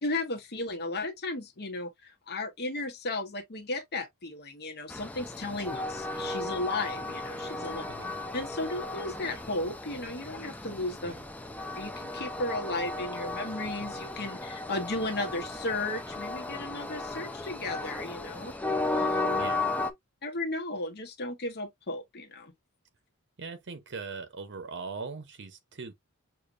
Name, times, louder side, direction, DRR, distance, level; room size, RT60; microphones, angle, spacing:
voice 1, 0.0-7.9 8.3-11.1 11.7-18.5 18.9-19.5 20.2-22.5, left 2 dB, 50° left, 1.1 m, -35 dB
Train, 4.9-19.9, left 2 dB, 5° left, 0.6 m, -35 dB
voice 2, 7.8-8.2 11.0-11.2 19.4-19.7 23.4-25.9, right 4 dB, 55° right, 0.8 m, -40 dB
6.6 x 2.8 x 2.5 m
head